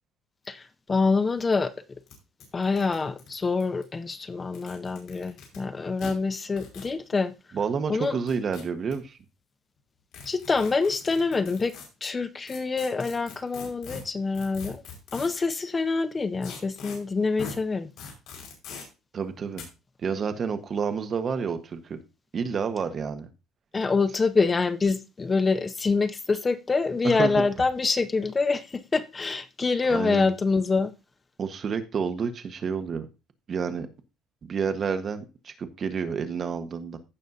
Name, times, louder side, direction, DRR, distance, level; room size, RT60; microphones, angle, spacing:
voice 1, 0.5-1.7 2.5-7.3 7.9-8.2 10.3-11.8 12.0-14.8 15.1-17.9 23.7-30.9, left 4 dB, 20° left, 0.5 m, -26 dB
sound 1, 1.3-1.4 1.6-1.7 2.1-2.2 2.4-3.8 4.4-5.6 6.0-6.1 6.6-6.9 8.0-8.9 10.1-11.9 12.5-15.4 16.4-17.0 17.4-17.6 18.0-18.8 19.6-19.7, left 5 dB, 60° left, 5.0 m, -42 dB
voice 2, 7.5-9.2 19.1-19.7 20.0-22.0 22.3-23.3 27.0-27.4 29.9-30.3 31.4-33.1 33.5-33.9 34.5-37.0, right 6 dB, 35° right, 1.3 m, -29 dB
15.5 x 6.3 x 2.7 m
cardioid pair, 130°, 0 cm